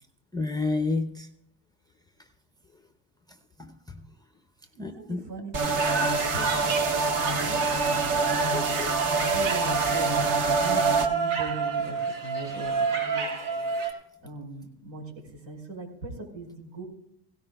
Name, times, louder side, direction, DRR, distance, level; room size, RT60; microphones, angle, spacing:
voice 1, 0.3-1.3 3.6-4.0 4.8-5.2 8.5-8.9, left 3 dB, 10° left, 7 dB, 0.5 m, -30 dB
voice 2, 4.8-6.0 6.3-8.5 9.0-12.0 12.2-13.7 14.2-15.0 15.5-16.9, right 2 dB, 85° right, 1 dB, 5.1 m, -40 dB
sound 1, 5.5-11.1, right 3 dB, 40° right, 1.4 m, -26 dB
sound 2, 5.8-13.9, right 5 dB, 65° right, 4.0 m, -29 dB
17.0 x 16.0 x 2.3 m, 0.75 s
supercardioid pair, 120°, 49 cm